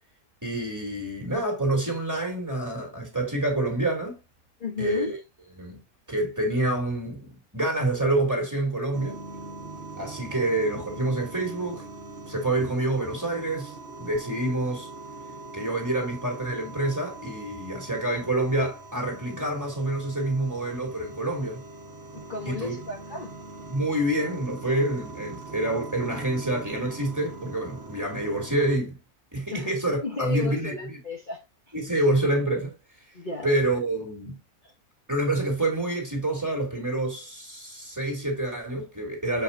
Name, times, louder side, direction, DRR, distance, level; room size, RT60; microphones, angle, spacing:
voice 1, 0.4-4.2 4.8-5.2 5.6-5.8 6.1-9.2 10.0-11.9 12.3-14.9 15.5-21.6 22.4-22.8 23.7-29.0 29.3-31.0 31.7-32.7 33.4-34.4 35.1-39.4, right 1 dB, 10° right, 2.9 m, -27 dB
voice 2, 4.6-5.1 22.1-23.3 29.5-29.7 30.0-31.4 33.1-33.6 34.6-34.7, left 4 dB, 35° left, 1.3 m, -34 dB
sound 1, 8.9-28.8, right 3 dB, 45° right, 1.7 m, -42 dB
7.1 x 5.7 x 2.7 m
omnidirectional pair, 1.6 m